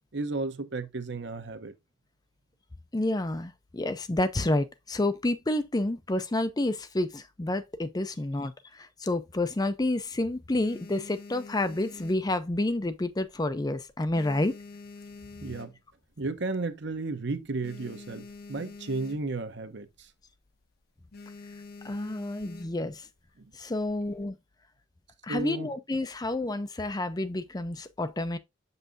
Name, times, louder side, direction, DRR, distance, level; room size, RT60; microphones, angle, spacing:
voice 1, 0.1-1.7 15.4-15.7 16.2-20.1 23.4-23.5 25.3-25.7, right 3 dB, 65° right, 0.9 m, -33 dB
voice 2, 2.9-14.5 21.8-23.1 23.5-24.4 25.2-28.4, left 2 dB, 20° left, 0.5 m, -29 dB
sound 1, 9.3-10.0 10.4-12.9 13.2-13.6 13.9-16.1 16.6-16.7 16.9-17.0 17.3-19.5 19.8-20.1 20.4-20.7 21.1-22.9 23.7-24.2, left 3 dB, 55° left, 0.7 m, -46 dB
7.3 x 5.5 x 2.6 m
head